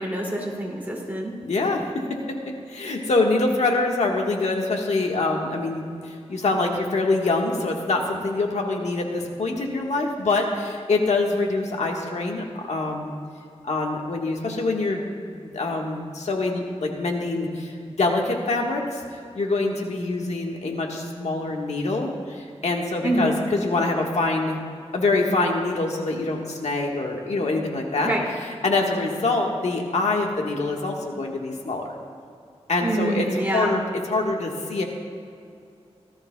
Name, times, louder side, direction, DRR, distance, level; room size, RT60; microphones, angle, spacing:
voice 1, 0.0-1.3 23.0-23.4 28.0-28.2 32.8-33.8, right 1 dB, 15° right, -3 dB, 2.6 m, -26 dB
voice 2, 1.4-1.8 2.3-2.4 2.7-13.1 13.6-15.0 15.3-19.0 19.3-24.6 24.9-28.2 28.5-31.8 32.7-34.8, left 3 dB, 85° left, 1 dB, 1.5 m, -25 dB
18.0 x 13.0 x 2.3 m, 2.5 s
wide cardioid pair, 90°, 11 cm